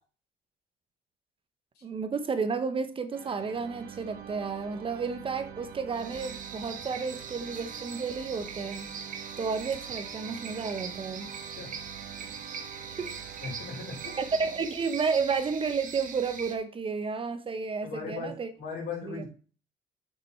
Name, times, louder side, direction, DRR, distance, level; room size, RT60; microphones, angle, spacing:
voice 1, 1.8-8.9 9.4-11.3 13.0-13.2 14.2-18.5 19.0-19.2, right 5 dB, 30° right, 1.0 m, -32 dB
sound 1, 3.1-15.1, right 9 dB, 70° right, 1.4 m, -46 dB
sound 2, 5.9-16.5, right 6 dB, 50° right, 1.6 m, -41 dB
voice 2, 13.4-14.1 17.8-19.3, left 4 dB, 75° left, 4.6 m, -38 dB
7.9 x 5.9 x 4.4 m
cardioid pair, 110°, 17 cm